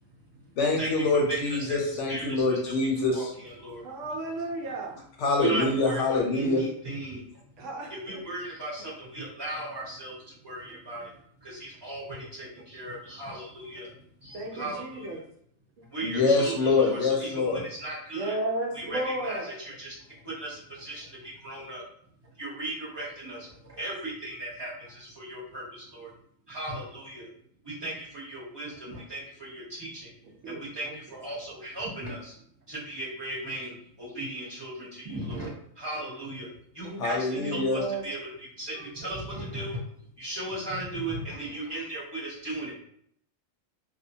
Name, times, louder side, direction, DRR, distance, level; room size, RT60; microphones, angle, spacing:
voice 1, 0.6-3.3 5.2-6.6 16.0-17.6 37.0-37.8, left 3 dB, 70° left, 0 dB, 0.8 m, -25 dB
voice 2, 1.3-1.8 2.1-2.7 3.1-3.8 5.4-7.4 7.9-11.1 11.4-13.9 14.2-15.2 15.9-18.3 18.7-21.8 22.4-24.7 25.0-26.1 26.5-27.3 27.6-30.1 30.4-32.3 32.7-36.5 36.7-39.8 40.2-42.7, right 2 dB, 20° right, -7 dB, 0.8 m, -37 dB
voice 3, 3.8-5.0 7.6-8.2 10.7-10.8 14.3-15.2 18.1-19.5 30.4-31.0 36.8-37.0 37.3-38.0, right 2 dB, 75° right, 0 dB, 0.9 m, -34 dB
2.6 x 2.1 x 2.6 m, 0.68 s
omnidirectional pair, 1.4 m